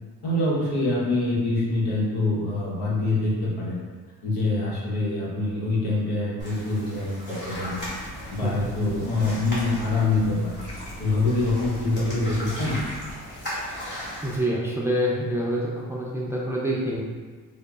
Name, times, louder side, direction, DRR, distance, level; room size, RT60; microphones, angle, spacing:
voice 1, 0.2-3.8 4.2-7.9 8.3-10.5 11.0-12.8, left 2 dB, 75° left, -5 dB, 1.0 m, -25 dB
sound 1, 6.4-14.4, equal, 30° left, 1.4 m, -37 dB
sound 2, 7.5-13.1, left 1 dB, 45° left, 1.5 m, -41 dB
voice 2, 14.2-17.0, equal, 5° right, -5 dB, 0.5 m, -26 dB
3.6 x 2.0 x 2.3 m, 1.5 s
supercardioid pair, 65°, 39 cm